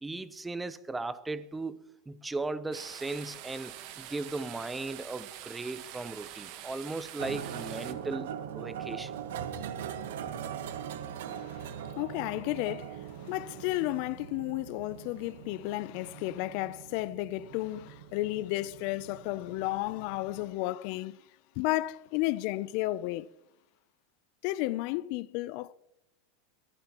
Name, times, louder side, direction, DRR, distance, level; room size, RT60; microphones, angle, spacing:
voice 1, 0.0-9.1, right 3 dB, 5° right, 0.5 m, -37 dB
sound 1, 2.7-7.9, right 12 dB, 45° right, 1.2 m, -45 dB
sound 2, 7.2-20.5, right 9 dB, 80° right, 1.3 m, -41 dB
voice 2, 11.3-21.2 21.6-23.3 24.4-25.7, left 18 dB, 45° left, 0.4 m, -33 dB
23.0 x 14.0 x 2.9 m
supercardioid pair, 170°, 0 cm